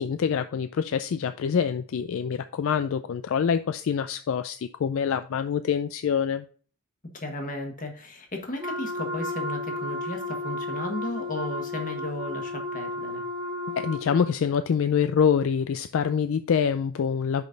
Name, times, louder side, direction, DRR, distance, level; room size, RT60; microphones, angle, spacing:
voice 1, 0.0-6.4 13.7-17.4, left 7 dB, 65° left, 0.3 m, -25 dB
voice 2, 7.1-13.2, left 2 dB, 35° left, 1.4 m, -35 dB
Wind instrument woodwind instrument, 8.6-14.4, left 1 dB, 20° right, 1.7 m, -33 dB
6.0 x 5.3 x 3.8 m
head